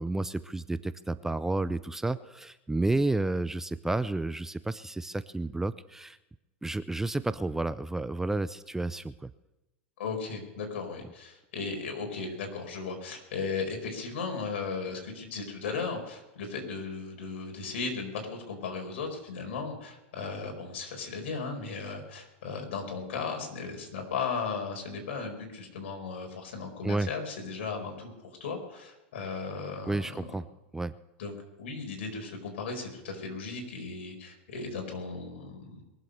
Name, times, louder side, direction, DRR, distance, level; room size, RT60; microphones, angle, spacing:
voice 1, 0.0-6.2 6.6-9.3 26.8-27.1 29.9-30.4 30.7-30.9, right 2 dB, 5° right, 14 dB, 0.5 m, -31 dB
voice 2, 10.0-28.1 28.4-30.2 31.2-31.3 31.6-35.8, left 4 dB, 75° left, 3 dB, 4.9 m, -36 dB
22.5 x 7.8 x 6.5 m, 1.0 s
hypercardioid pair, 115°, 6 cm